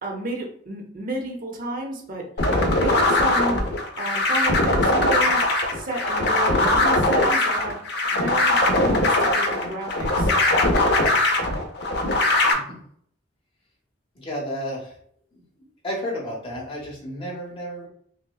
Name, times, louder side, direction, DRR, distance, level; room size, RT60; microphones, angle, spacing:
voice 1, 0.0-2.3 2.8-3.6 4.0-5.4 5.7-7.8 8.2-10.4, right 1 dB, 50° right, 1 dB, 0.9 m, -31 dB
sound 1, 2.4-12.5, left 2 dB, 65° left, 0.6 m, -21 dB
voice 2, 14.1-14.9 15.3-15.4 15.8-17.9, equal, 30° left, -3 dB, 1.1 m, -32 dB
5.5 x 2.2 x 2.3 m, 0.62 s
head